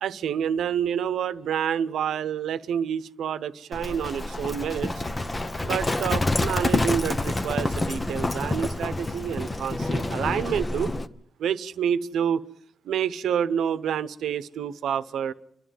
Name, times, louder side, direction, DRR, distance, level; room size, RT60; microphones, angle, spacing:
voice 1, 0.0-5.0 5.6-10.9 11.4-12.4 12.8-15.3, right 8 dB, 80° right, 1.0 m, -28 dB
Livestock farm animals working animals, 3.7-11.1, left 2 dB, 20° left, 0.9 m, -27 dB
29.5 x 11.5 x 9.4 m
cardioid pair, 110°, 0 cm